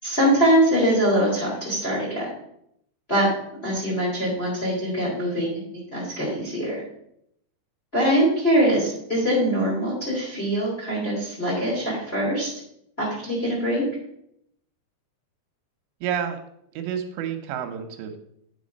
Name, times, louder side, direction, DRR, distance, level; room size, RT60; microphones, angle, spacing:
voice 1, 0.0-2.3 3.1-3.3 3.6-5.6 5.9-6.8 7.9-12.5 13.0-13.8, equal, 20° left, -5 dB, 2.2 m, -23 dB
voice 2, 16.0-16.4 16.7-18.2, right 8 dB, 85° right, 6 dB, 3.1 m, -29 dB
8.9 x 6.2 x 5.2 m, 0.74 s
omnidirectional pair, 5.0 m